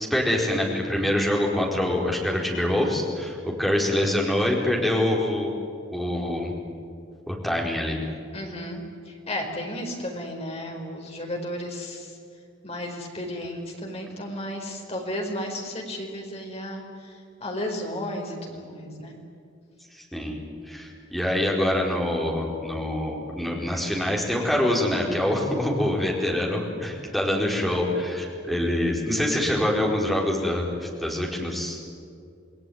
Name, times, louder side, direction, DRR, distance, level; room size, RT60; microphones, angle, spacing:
voice 1, 0.0-5.5 5.9-6.5 7.3-8.0 19.9-20.4 20.7-31.9, left 1 dB, ahead, -2 dB, 4.6 m, -25 dB
voice 2, 8.3-12.1 12.6-19.1, left 1 dB, 30° left, 1 dB, 4.6 m, -33 dB
28.5 x 20.0 x 9.5 m, 2.4 s
head